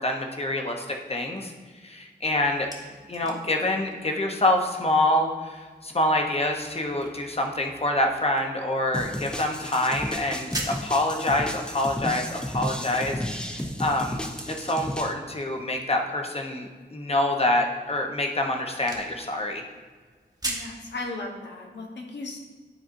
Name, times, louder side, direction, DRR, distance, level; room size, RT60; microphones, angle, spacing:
voice 1, 0.0-1.5 1.8-2.7 3.1-13.5 13.8-14.2 14.5-19.6, left 1 dB, 35° left, 3 dB, 0.8 m, -26 dB
sound 1, 2.3-20.8, right 1 dB, 20° right, 1.0 m, -44 dB
sound 2, 8.9-15.1, equal, 5° left, 0.5 m, -33 dB
voice 2, 20.4-22.4, left 2 dB, 85° left, 0 dB, 1.0 m, -36 dB
9.9 x 4.2 x 2.6 m, 1.5 s
wide cardioid pair, 85°, 18 cm